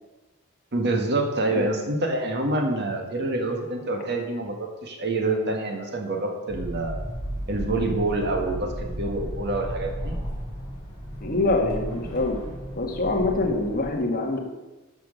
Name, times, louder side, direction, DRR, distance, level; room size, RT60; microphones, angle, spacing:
voice 1, 0.7-7.0 7.5-10.2, right 2 dB, 50° right, 3 dB, 1.8 m, -27 dB
sound 1, 6.5-13.9, equal, 20° left, 3.9 m, -34 dB
voice 2, 11.2-12.4 12.8-14.4, left 2 dB, 45° left, 1 dB, 1.8 m, -25 dB
11.5 x 6.7 x 6.6 m, 1.1 s
head